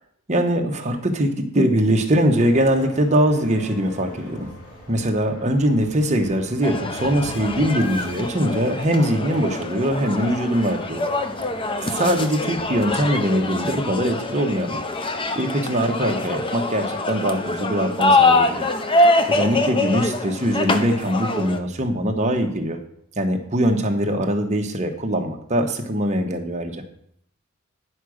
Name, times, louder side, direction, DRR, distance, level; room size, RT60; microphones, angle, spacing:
voice 1, 0.3-4.5 4.9-11.0 11.9-14.8 15.3-18.6 19.3-22.8 23.2-26.8, equal, 30° right, 3 dB, 1.1 m, -22 dB
sound 1, 2.3-15.2, left 1 dB, 80° left, 2.8 m, -42 dB
sound 2, 6.6-21.6, left 2 dB, 25° left, 0.6 m, -24 dB
10.0 x 4.8 x 6.3 m, 0.71 s
head